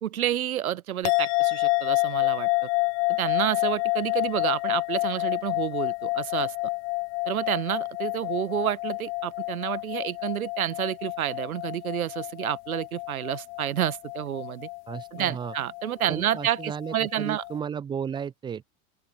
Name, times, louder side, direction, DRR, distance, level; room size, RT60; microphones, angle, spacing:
voice 1, 0.0-2.7 3.1-6.5 7.2-14.7 15.1-17.4, right 11 dB, 80° right, 1.2 m, -29 dB
sound 1, 1.0-17.6, left 24 dB, 55° left, 0.5 m, -29 dB
voice 2, 14.9-15.5 16.1-18.6, right 7 dB, 10° right, 0.3 m, -34 dB
open air
figure-of-eight pair, 80°, 43 cm